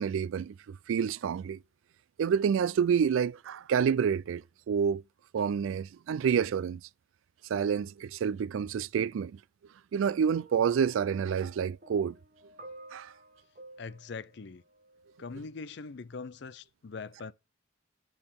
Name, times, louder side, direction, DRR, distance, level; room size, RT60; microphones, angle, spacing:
voice 1, 0.0-1.6 2.2-5.0 5.3-6.8 7.5-9.4 9.9-12.2 12.9-13.1, right 7 dB, 85° right, 0.3 m, -28 dB
sound 1, 10.3-15.4 16.3-16.5, right 2 dB, 40° right, 1.3 m, -53 dB
voice 2, 13.8-14.6 15.2-17.3, left 4 dB, 60° left, 0.5 m, -42 dB
8.7 x 6.0 x 3.6 m
head